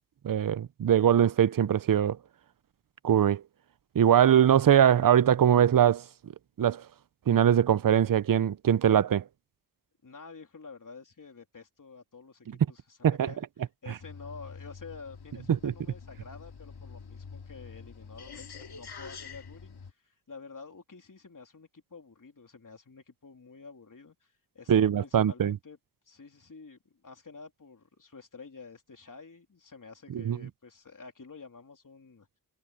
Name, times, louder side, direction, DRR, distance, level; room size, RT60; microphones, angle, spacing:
voice 1, 0.2-2.2 3.0-3.4 3.9-6.0 6.6-6.8 7.3-9.2 13.0-13.3 15.6-15.7 24.7-25.6 30.1-30.4, right 9 dB, 60° right, 0.6 m, -22 dB
voice 2, 10.0-25.8 26.0-32.3, left 4 dB, 55° left, 3.4 m, -49 dB
sound 1, 14.0-19.9, left 5 dB, 80° left, 2.4 m, -46 dB
wide cardioid pair, 65°, 38 cm